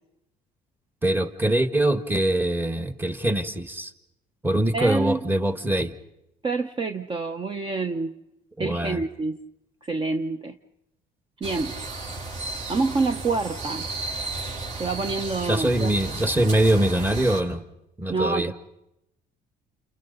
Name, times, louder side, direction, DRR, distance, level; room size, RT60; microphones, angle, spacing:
voice 1, 1.0-3.9 4.4-5.9 8.6-9.0 15.5-17.6 18.0-18.5, right 1 dB, 10° right, 9 dB, 1.6 m, -23 dB
voice 2, 4.7-5.2 6.4-8.1 8.6-9.4 9.8-10.5 11.4-11.7 12.7-13.9 14.8-15.9 18.1-18.5, right 3 dB, 30° right, 6 dB, 1.0 m, -27 dB
sound 1, 11.4-17.4, right 3 dB, 50° right, 4.8 m, -34 dB
29.5 x 29.5 x 4.0 m, 0.86 s
cardioid pair, 110°, 17 cm